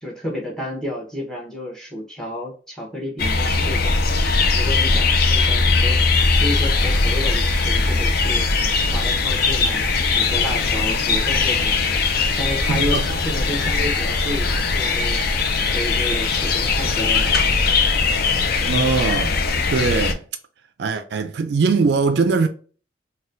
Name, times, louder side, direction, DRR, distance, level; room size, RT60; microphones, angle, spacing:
voice 1, 0.0-4.0 4.5-8.5 8.9-11.8 12.4-15.2 15.7-17.4, equal, 5° left, 0.9 m, -31 dB
sound 1, 3.2-20.1, left 4 dB, 55° left, 0.4 m, -20 dB
sound 2, 6.1-17.9, left 1 dB, 70° left, 1.2 m, -38 dB
voice 2, 12.7-13.0 18.6-19.4 19.7-20.2 20.8-22.5, right 4 dB, 60° right, 0.3 m, -20 dB
4.0 x 2.2 x 2.5 m
head